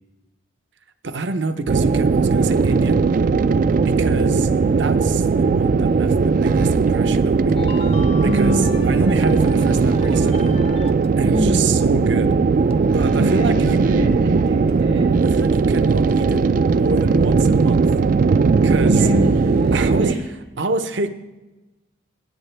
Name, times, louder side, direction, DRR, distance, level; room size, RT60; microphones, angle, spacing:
voice 1, 1.0-3.0 3.7-10.5 11.2-12.3 12.8-13.8 15.2-17.9 18.6-19.1 19.7-20.1 20.6-21.1, right 3 dB, 60° right, 9 dB, 0.7 m, -27 dB
sound 1, 1.7-20.2, right 4 dB, 45° right, 0.3 m, -18 dB
sound 2, 7.5-11.1 11.3-13.3, left 3 dB, 30° left, 0.5 m, -38 dB
voice 2, 8.2-9.1 11.2-11.6 13.2-15.1 18.8-20.2, equal, 85° right, -1 dB, 4.5 m, -25 dB
16.5 x 8.7 x 3.4 m, 1.1 s
head